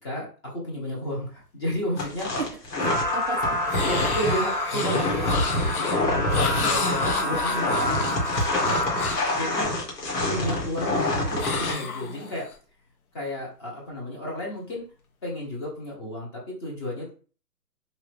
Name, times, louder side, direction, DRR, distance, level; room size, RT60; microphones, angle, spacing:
voice 1, 0.0-2.4 3.8-7.9 9.3-9.7 10.2-12.5 13.1-14.8 15.2-17.1, left 1 dB, 15° left, -3 dB, 0.8 m, -32 dB
sound 1, 2.0-11.7, left 2 dB, 80° left, 2.1 m, -27 dB
voice 2, 2.3-3.6 4.2-4.5 8.7-9.1, right 5 dB, 45° right, 3 dB, 0.5 m, -35 dB
sound 2, 2.8-9.6, left 1 dB, 30° left, 0.4 m, -28 dB
sound 3, 3.7-9.3 11.4-12.5, left 5 dB, 60° left, 0.9 m, -32 dB
3.8 x 2.7 x 3.3 m, 0.38 s
hypercardioid pair, 150°, 49 cm